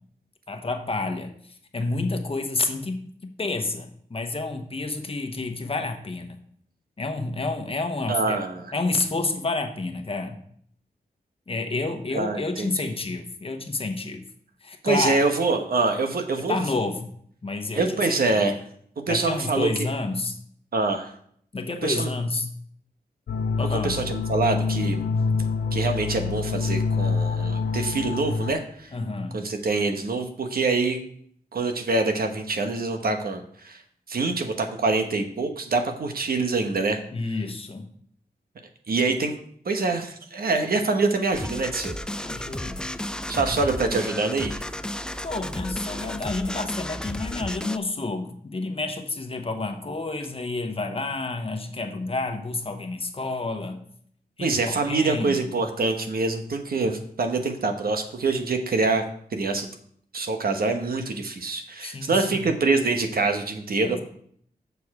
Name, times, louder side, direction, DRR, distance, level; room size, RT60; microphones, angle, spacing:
voice 1, 0.5-6.4 7.0-8.4 8.7-10.4 11.5-14.2 14.6-15.2 16.4-17.1 17.4-18.0 18.3-18.5 19.1-20.4 21.5-22.5 23.6-24.0 28.9-29.4 37.1-37.9 42.2-42.9 43.4-43.6 45.2-53.8 54.4-55.4 61.8-62.5 63.8-64.0, left 3 dB, 35° left, 5 dB, 1.1 m, -29 dB
voice 2, 8.1-8.7 12.1-12.9 14.8-16.6 17.7-18.5 19.0-19.7 20.7-21.1 21.8-22.1 23.8-25.0 25.7-28.9 29.3-31.0 31.5-33.8 34.1-37.0 38.9-39.3 39.6-42.0 43.3-44.6 54.4-59.0 59.3-59.7 60.1-64.0, right 3 dB, 70° right, 6 dB, 1.1 m, -25 dB
sound 1, 23.3-28.5, left 4 dB, 90° left, 0.5 m, -26 dB
sound 2, 41.3-47.8, left 1 dB, 5° left, 0.3 m, -33 dB
6.9 x 6.9 x 4.8 m, 0.63 s
wide cardioid pair, 110°, 16 cm